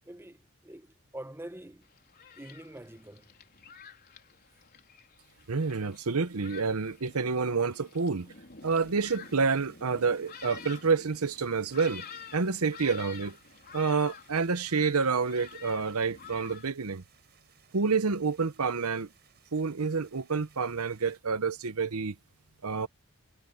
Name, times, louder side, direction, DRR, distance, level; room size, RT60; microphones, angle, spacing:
voice 1, 0.1-0.4 0.6-1.8 2.4-3.3, right 1 dB, 10° right, 0.9 m, -45 dB
Thunderstorm, 1.8-16.6, left 6 dB, 45° left, 4.5 m, -49 dB
voice 2, 5.5-8.3 8.6-12.0 12.3-13.4 13.7-17.0 17.7-19.1 19.5-22.1 22.6-22.9, right 4 dB, 75° right, 0.9 m, -28 dB
sound 1, 8.6-21.2, right 8 dB, 45° right, 6.2 m, -63 dB
head